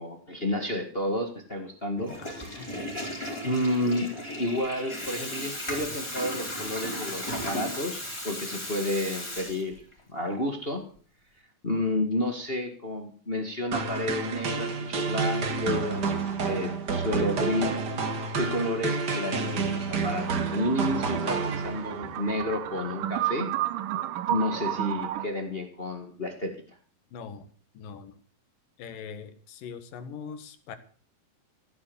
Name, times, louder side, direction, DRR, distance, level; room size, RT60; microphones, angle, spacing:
voice 1, 0.0-2.1 2.5-2.9 3.4-4.1 4.4-9.8 10.1-10.8 11.6-16.1 16.4-17.8 18.3-23.5 24.3-26.5, left 1 dB, 30° left, 4 dB, 1.0 m, -30 dB
Water tap faucet / Toilet flush, 2.0-10.0, left 1 dB, 5° left, 4.4 m, -36 dB
voice 2, 2.2-2.7 27.1-27.5 27.7-28.2 28.8-30.8, left 6 dB, 75° left, 10 dB, 3.1 m, -42 dB
sound 1, 13.7-22.1, right 4 dB, 45° right, 1.5 m, -29 dB
sound 2, 20.2-25.3, right 13 dB, 75° right, 2.4 m, -32 dB
15.5 x 9.6 x 7.0 m, 0.43 s
omnidirectional pair, 4.0 m